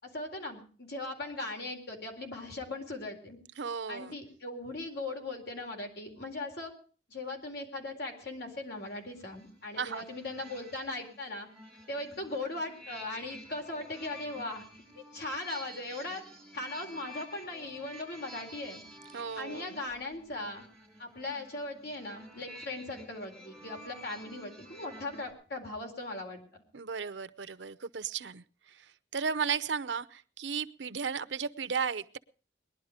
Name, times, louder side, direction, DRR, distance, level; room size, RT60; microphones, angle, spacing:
voice 1, 0.0-3.4 3.9-6.7 7.1-11.5 11.9-14.6 14.9-16.2 16.5-18.8 19.4-20.6 21.0-26.4, left 2 dB, 65° left, 2 dB, 4.1 m, -39 dB
voice 2, 3.6-4.1 9.8-10.1 19.1-19.8 26.7-32.2, right 6 dB, 90° right, 13 dB, 0.7 m, -35 dB
sound 1, 8.7-25.3, equal, 5° left, 6.1 m, -51 dB
20.5 x 11.5 x 5.0 m, 0.41 s
head